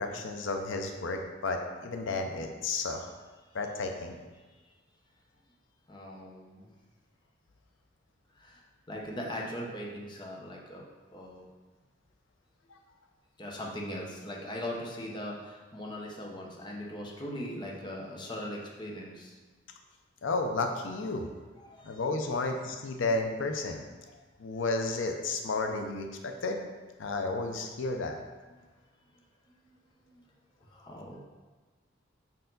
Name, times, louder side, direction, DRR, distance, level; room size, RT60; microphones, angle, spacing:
voice 1, 0.0-3.1 3.5-4.2 20.2-21.3 21.8-23.8 24.4-26.6 27.0-28.2, left 3 dB, 90° left, 4 dB, 0.5 m, -32 dB
voice 2, 5.9-6.7 8.4-8.6 8.9-11.5 13.4-19.3 21.6-22.0 28.5-28.6 30.1-30.2 30.7-31.2, left 1 dB, 25° left, -2 dB, 0.8 m, -40 dB
5.3 x 4.6 x 3.9 m, 1.3 s
head